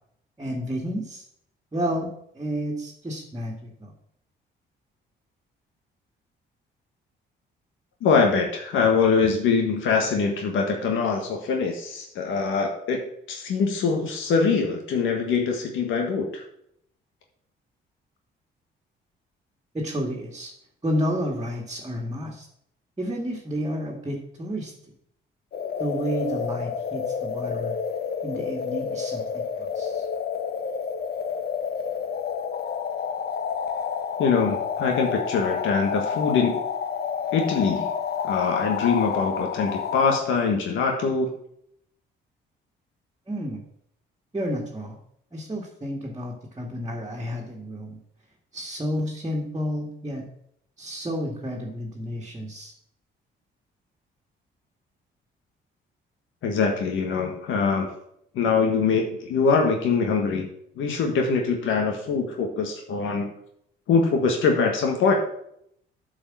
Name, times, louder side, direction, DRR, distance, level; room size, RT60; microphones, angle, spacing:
voice 1, 0.4-1.2 1.7-3.9 19.7-20.5 20.8-22.5 23.0-24.7 25.8-27.8 28.2-30.0 43.3-43.6 44.3-45.0 45.3-48.0 48.5-50.3 50.8-52.7, equal, 20° right, -2 dB, 1.9 m, -31 dB
voice 2, 8.0-13.0 13.3-16.4 34.2-36.6 37.3-37.9 38.2-41.3 56.4-57.9 58.3-60.5 60.8-63.3 63.9-65.1, left 5 dB, 80° left, 2 dB, 1.6 m, -23 dB
sound 1, 25.5-40.2, left 7 dB, 55° left, 0.9 m, -29 dB
8.7 x 4.9 x 7.7 m, 0.71 s
cardioid pair, 90°, 20 cm